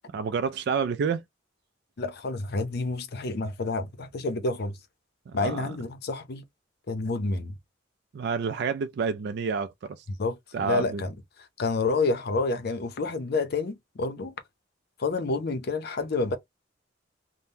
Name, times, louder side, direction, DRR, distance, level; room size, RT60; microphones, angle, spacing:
voice 1, 0.1-1.2 5.3-5.6 8.1-10.0 10.5-11.0, right 6 dB, 60° right, 0.3 m, -29 dB
voice 2, 2.0-4.8 5.3-6.4 6.9-7.5 10.2-11.1 11.6-14.3 15.0-16.4, left 3 dB, 55° left, 0.6 m, -29 dB
3.5 x 2.1 x 2.7 m
head